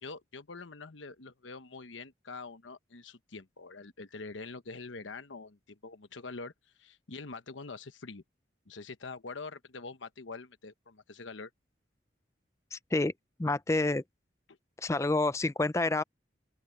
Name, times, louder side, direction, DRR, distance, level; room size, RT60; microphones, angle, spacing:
voice 1, 0.0-8.2 8.7-11.5 14.5-14.6, left 4 dB, 90° left, 1.1 m, -45 dB
voice 2, 12.7-13.1 13.4-14.0 14.8-16.0, left 2 dB, 15° left, 0.4 m, -28 dB
open air
head